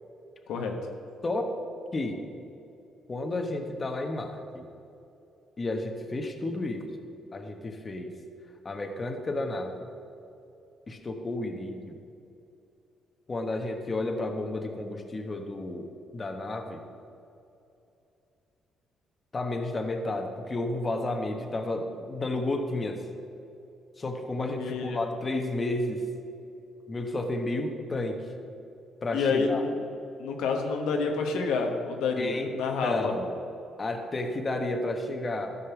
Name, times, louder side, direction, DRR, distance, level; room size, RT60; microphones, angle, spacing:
voice 1, 1.2-1.5 1.9-2.2 3.1-4.6 5.6-6.9 7.3-8.1 8.6-9.9 10.9-12.0 13.3-16.8 19.3-23.0 24.0-26.1 26.9-28.2 29.0-29.6 32.2-32.6 32.8-33.3 33.8-35.6, left 2 dB, 30° left, 4 dB, 1.2 m, -32 dB
voice 2, 24.4-25.0 29.1-29.8 30.2-33.1, left 4 dB, 90° left, 2 dB, 1.3 m, -28 dB
13.0 x 5.5 x 7.2 m, 2.7 s
cardioid pair, 90°, 0 cm